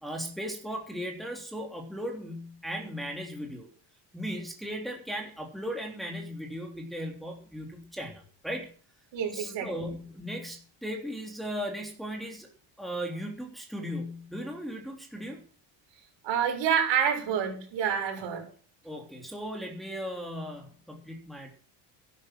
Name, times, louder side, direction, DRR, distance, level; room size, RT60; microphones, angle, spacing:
voice 1, 0.0-3.7 4.1-8.7 9.3-12.5 12.8-15.4 18.8-21.6, equal, ahead, 0 dB, 3.4 m, -37 dB
voice 2, 9.1-9.9 16.2-18.4, right 8 dB, 65° right, 1 dB, 7.2 m, -28 dB
13.0 x 11.0 x 6.4 m, 0.43 s
cardioid pair, 115°, 47 cm